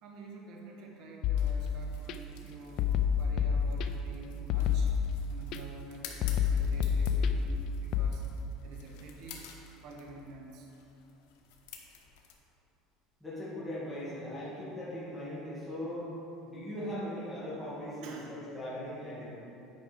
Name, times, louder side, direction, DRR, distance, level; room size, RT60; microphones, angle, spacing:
voice 1, 0.0-4.9 5.3-8.3 8.6-9.5 9.8-10.7 18.0-18.3, right 2 dB, 50° right, 0 dB, 1.0 m, -48 dB
sound 1, 1.2-2.1 2.8-4.1 4.5-5.6 6.2-8.1, left 7 dB, 40° left, 0.3 m, -29 dB
sound 2, 1.4-12.3, left 7 dB, 85° left, 1.1 m, -53 dB
voice 2, 13.2-16.1 16.4-19.3, left 1 dB, ahead, -10 dB, 2.0 m, -39 dB
9.3 x 5.0 x 5.0 m, 2.9 s
cardioid pair, 170°, 0 cm